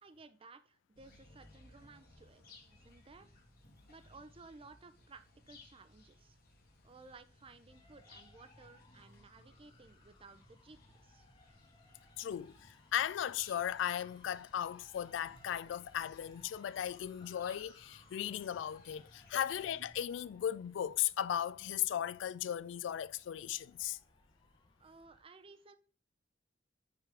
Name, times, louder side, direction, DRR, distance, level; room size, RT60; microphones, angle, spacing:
voice 1, 0.0-2.4 2.7-3.3 3.9-6.4 6.8-11.3 24.8-25.8, right 3 dB, 30° right, 0.5 m, -57 dB
sound 1, 0.9-20.0, left 2 dB, 50° left, 1.6 m, -62 dB
sound 2, 6.4-25.2, left 3 dB, 25° left, 0.8 m, -65 dB
voice 2, 12.2-24.0, left 10 dB, 70° left, 0.3 m, -37 dB
5.7 x 5.0 x 3.4 m
head